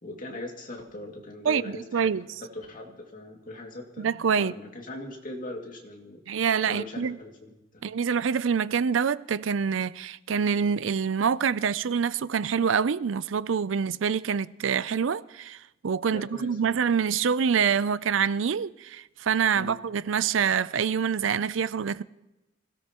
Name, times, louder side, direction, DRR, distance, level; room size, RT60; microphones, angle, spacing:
voice 1, 0.0-4.1 4.4-6.2 6.6-7.5 7.9-8.0 16.1-16.8 19.5-19.8, left 1 dB, 45° left, 2.4 m, -40 dB
voice 2, 1.4-2.3 4.0-4.5 6.3-7.2 7.8-22.0, right 6 dB, 90° right, 0.5 m, -26 dB
26.0 x 16.5 x 3.0 m
head